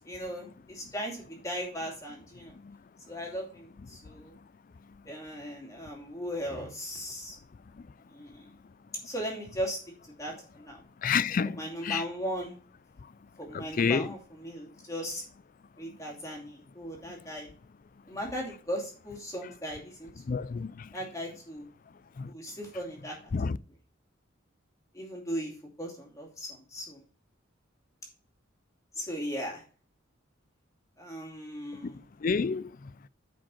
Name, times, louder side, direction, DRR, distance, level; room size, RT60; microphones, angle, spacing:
voice 1, 0.0-2.6 3.1-4.3 5.0-7.4 8.1-8.5 9.0-9.8 10.0-10.8 11.4-12.6 13.4-15.2 15.8-17.5 18.1-20.4 20.9-21.7 22.3-23.1 24.9-25.5 25.8-27.0 29.0-29.6 31.0-32.0, equal, 15° left, 2.7 m, -37 dB
voice 2, 11.0-12.0 13.5-14.1 20.3-20.7 22.2-22.3 23.3-23.6 31.8-31.9 32.2-32.7, left 5 dB, 40° left, 0.4 m, -28 dB
10.0 x 5.3 x 4.3 m
head